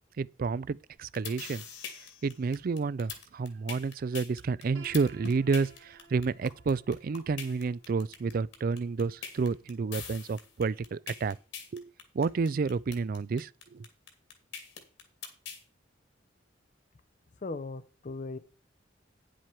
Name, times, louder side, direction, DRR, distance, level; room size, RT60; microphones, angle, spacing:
voice 1, 0.2-1.6 2.2-11.4 11.7-13.8, right 4 dB, 50° right, 0.4 m, -30 dB
sound 1, 0.9-15.6, left 6 dB, 70° left, 2.4 m, -42 dB
Piano, 4.7-10.6, right 4 dB, 75° right, 1.7 m, -56 dB
voice 2, 17.4-18.4, left 3 dB, 40° left, 0.5 m, -38 dB
10.0 x 7.6 x 4.5 m
head